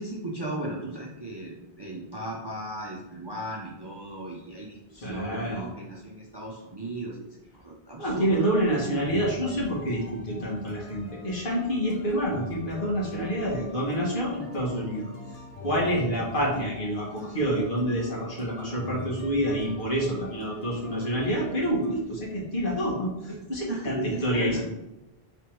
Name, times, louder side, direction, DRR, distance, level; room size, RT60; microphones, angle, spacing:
voice 1, 0.0-7.3 7.6-8.4 23.7-24.6, right 1 dB, 30° right, -4 dB, 0.6 m, -36 dB
voice 2, 4.9-5.7 8.0-15.1 15.6-24.6, equal, 55° left, -4 dB, 1.5 m, -27 dB
sound 1, 9.0-22.0, left 4 dB, 40° left, 1.0 m, -44 dB
3.5 x 3.3 x 4.5 m, 0.98 s
omnidirectional pair, 1.0 m